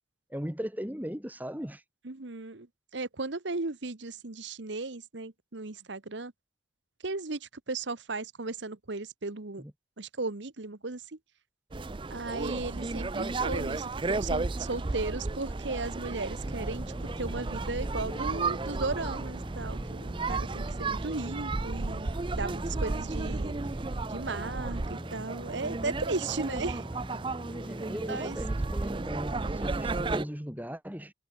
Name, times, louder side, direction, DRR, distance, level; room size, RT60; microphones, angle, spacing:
voice 1, 0.3-1.8 9.6-9.7 27.6-31.1, equal, 10° right, 3.0 m, -37 dB
voice 2, 2.0-2.7 2.9-6.3 7.0-9.6 10.0-11.0 12.1-16.8 17.2-22.1 22.3-23.6 24.1-26.8 28.1-28.4, right 3 dB, 70° right, 1.3 m, -36 dB
sound 1, 11.7-30.2, right 3 dB, 25° right, 0.5 m, -33 dB
sound 2, 16.5-29.4, equal, 15° left, 7.3 m, -43 dB
head